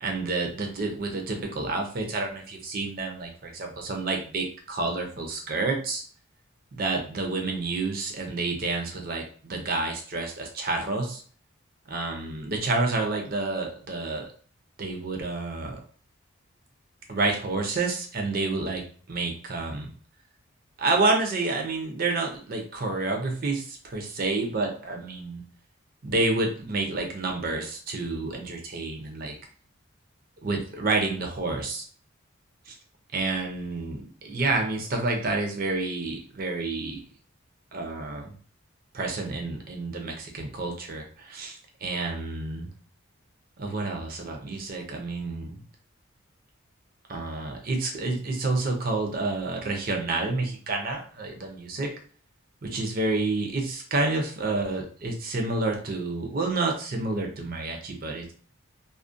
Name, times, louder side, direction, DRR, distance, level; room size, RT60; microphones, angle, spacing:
voice 1, 0.0-6.0 6.7-11.2 11.9-14.3 14.8-15.8 17.1-18.8 19.1-19.9 20.8-25.4 26.0-29.3 30.4-31.8 32.7-32.8 33.1-37.0 37.7-38.3 38.9-42.7 43.6-45.6 47.1-51.9 52.6-58.3, right 3 dB, 45° right, 3 dB, 0.5 m, -29 dB
2.4 x 2.1 x 2.5 m, 0.43 s
head